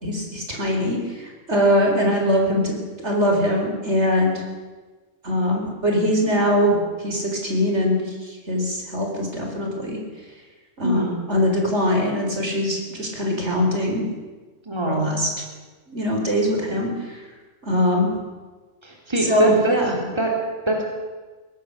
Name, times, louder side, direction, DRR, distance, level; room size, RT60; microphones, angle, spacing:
voice 1, 0.0-4.4 5.2-10.0 10.8-11.0 11.3-14.0 14.9-15.3 15.9-17.2 17.6-18.1 19.2-19.9, equal, 55° right, 1 dB, 4.5 m, -22 dB
voice 2, 10.8-11.2 14.7-15.2 18.8-19.7 20.0-20.8, right 1 dB, 20° right, -1 dB, 3.6 m, -24 dB
23.0 x 17.5 x 6.7 m, 1.3 s
omnidirectional pair, 1.4 m